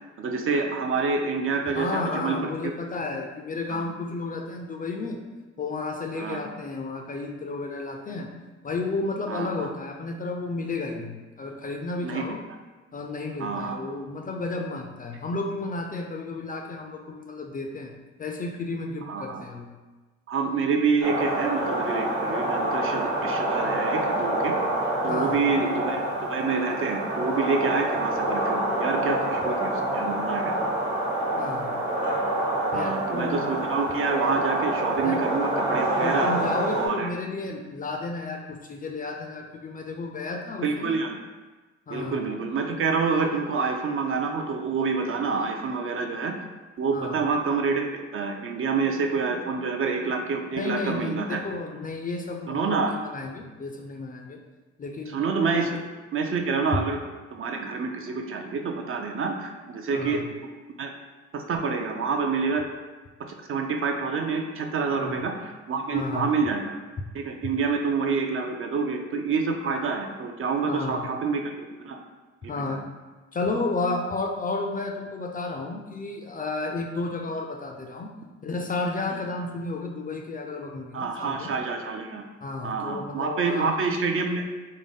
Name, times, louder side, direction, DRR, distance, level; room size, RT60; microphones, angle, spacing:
voice 1, 0.2-2.5 3.7-3.8 6.2-6.4 9.3-9.7 12.0-12.3 13.4-13.8 19.1-19.4 20.3-24.5 25.0-26.0 26.3-30.5 32.7-36.3 36.7-37.1 40.6-41.1 41.9-46.4 46.8-47.9 48.1-51.4 52.5-52.9 55.1-55.8 56.1-57.0 57.3-60.2 60.8-60.9 61.3-62.6 63.5-66.7 67.1-72.0 72.5-72.8 80.9-82.2 82.6-84.4, right 4 dB, 45° right, 4 dB, 0.4 m, -27 dB
voice 2, 1.7-5.2 5.6-8.3 8.6-12.4 12.9-19.7 25.0-25.7 31.4-31.8 32.7-33.4 35.0-35.3 36.0-41.0 41.9-42.2 46.9-47.2 50.5-54.4 54.8-55.3 55.5-55.7 59.9-60.3 64.9-65.2 65.9-66.4 70.7-71.1 72.5-72.9 73.3-78.1 78.4-81.5 82.4-83.8, left 3 dB, 30° left, 2 dB, 0.4 m, -32 dB
sound 1, 21.0-36.9, right 1 dB, 85° right, 1.3 m, -27 dB
3.7 x 2.1 x 3.5 m, 1.2 s
cardioid pair, 90°, 30 cm